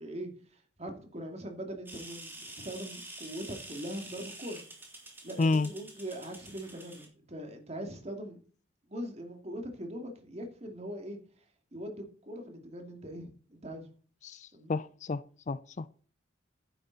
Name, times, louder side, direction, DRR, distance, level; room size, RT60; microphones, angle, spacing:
voice 1, 0.0-4.6 5.2-8.4 8.9-11.2 11.7-13.9 14.5-14.7, equal, 35° right, 2.5 m, -41 dB
sound 1, 1.9-7.1, right 2 dB, 10° right, 3.3 m, -47 dB
voice 2, 5.4-5.7 14.2-15.2 15.5-15.9, left 3 dB, 40° left, 0.4 m, -30 dB
11.0 x 9.8 x 4.0 m
head